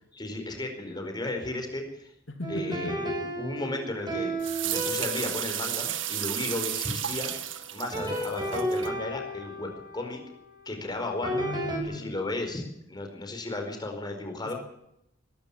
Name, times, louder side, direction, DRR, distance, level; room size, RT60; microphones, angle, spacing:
voice 1, 0.1-2.1 2.5-4.3 4.6-7.3 7.7-10.2 10.6-11.4 11.8-12.6 12.9-14.5, left 2 dB, 25° left, 4 dB, 4.7 m, -34 dB
voice 2, 2.3-3.0 11.3-12.1 14.4-14.5, left 1 dB, 75° left, 5 dB, 2.6 m, -37 dB
sound 1, 2.4-7.3 7.9-11.8, right 1 dB, 25° right, 7.4 m, -34 dB
sound 2, 4.4-8.9, right 11 dB, 80° right, 1.9 m, -33 dB
22.0 x 14.0 x 8.8 m, 0.79 s
head